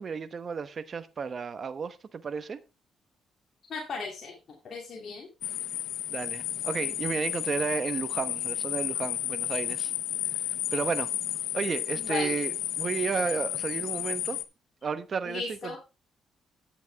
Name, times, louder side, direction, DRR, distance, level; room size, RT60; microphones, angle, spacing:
voice 1, 0.0-2.6 6.1-9.9 10.7-11.1 11.5-14.4 14.8-15.4, right 6 dB, 45° right, 1.0 m, -32 dB
voice 2, 3.7-4.4 4.6-5.3 12.0-12.4 15.2-15.8, left 4 dB, 55° left, 2.6 m, -36 dB
sound 1, 5.4-14.4, left 11 dB, 80° left, 0.7 m, -32 dB
10.5 x 8.2 x 3.4 m
cardioid pair, 90°, 0 cm